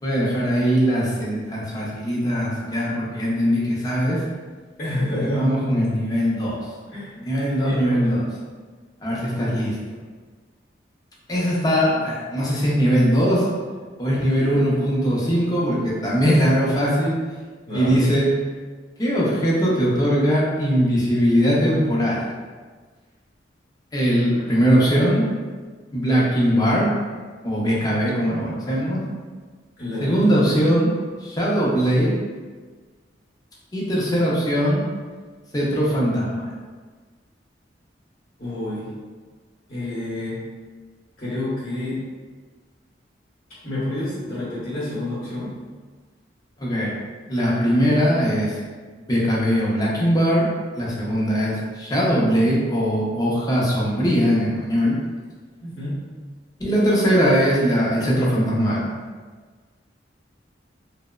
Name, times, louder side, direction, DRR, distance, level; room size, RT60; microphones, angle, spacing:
voice 1, 0.0-4.2 5.3-6.6 7.2-8.3 9.0-9.7 11.3-13.5 14.0-17.1 17.7-18.3 19.0-22.3 23.9-25.3 25.9-26.9 27.4-29.1 30.0-30.9 31.2-32.1 33.7-34.8 35.5-36.5 46.6-46.9 47.3-48.6 49.1-50.5 50.7-54.9 56.6-58.8, equal, 20° left, -6 dB, 0.5 m, -20 dB
voice 2, 4.8-5.5 6.9-7.2 7.5-8.0 17.7-18.0 29.8-30.2 38.4-38.9 39.7-40.4 41.2-42.0 43.6-45.5 51.0-51.1 55.6-55.9, left 1 dB, 40° left, -11 dB, 0.8 m, -29 dB
2.8 x 2.0 x 2.3 m, 1.5 s
head